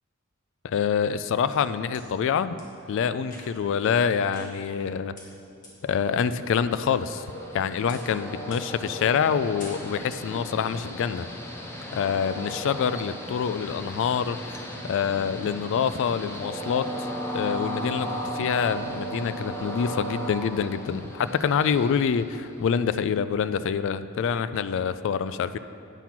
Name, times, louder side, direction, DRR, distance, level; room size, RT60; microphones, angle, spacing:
voice 1, 0.6-2.6 2.9-5.1 5.8-7.3 7.5-11.3 11.9-17.1 17.3-18.1 18.3-25.6, left 7 dB, 60° left, 13 dB, 0.3 m, -26 dB
sound 1, 1.5-2.0 2.6-2.7 3.2-3.7 4.3-4.9 5.2-5.3 5.6-5.7 6.2-6.8 7.1-7.5 7.9-8.2 8.5-8.8 9.1-9.3 9.6-10.2, left 1 dB, 40° left, 1.9 m, -47 dB
Train, 6.1-22.8, equal, 10° left, 0.8 m, -36 dB
9.0 x 5.8 x 5.9 m, 2.9 s
head